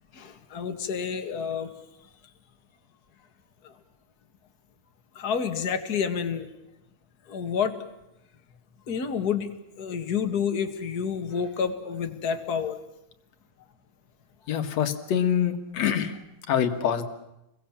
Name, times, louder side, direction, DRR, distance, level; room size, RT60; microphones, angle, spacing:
voice 1, 0.1-1.7 3.6-3.7 5.2-6.5 7.3-7.8 8.9-9.5 9.8-12.8, left 7 dB, 35° left, 6 dB, 2.0 m, -29 dB
voice 2, 14.5-16.2 16.5-17.0, left 9 dB, 60° left, 7 dB, 2.8 m, -25 dB
29.0 x 22.0 x 7.4 m, 0.90 s
omnidirectional pair, 3.7 m